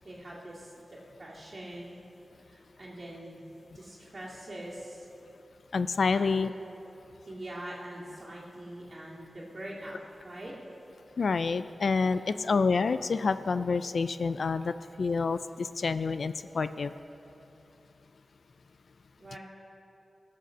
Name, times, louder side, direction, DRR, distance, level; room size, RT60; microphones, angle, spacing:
voice 1, 0.0-1.9 2.4-3.4 3.7-5.1 6.1-6.5 7.3-10.5 12.1-12.3 19.2-19.4, right 1 dB, 40° right, -6 dB, 2.2 m, -43 dB
voice 2, 5.7-6.5 11.2-16.9, left 4 dB, 65° left, 13 dB, 0.3 m, -28 dB
18.0 x 6.8 x 6.5 m, 2.9 s
wide cardioid pair, 125°, 0 cm